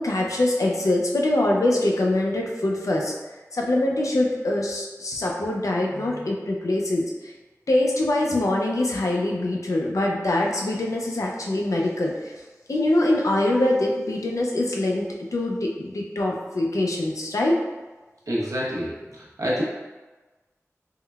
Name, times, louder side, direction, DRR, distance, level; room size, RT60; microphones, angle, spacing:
voice 1, 0.0-3.1 3.5-7.3 7.7-12.3 12.7-15.1 15.3-17.6, left 1 dB, 75° left, -1 dB, 0.5 m, -23 dB
voice 2, 18.3-19.6, equal, 85° right, -5 dB, 0.7 m, -28 dB
3.6 x 2.1 x 2.2 m, 1.2 s
wide cardioid pair, 55°, 6 cm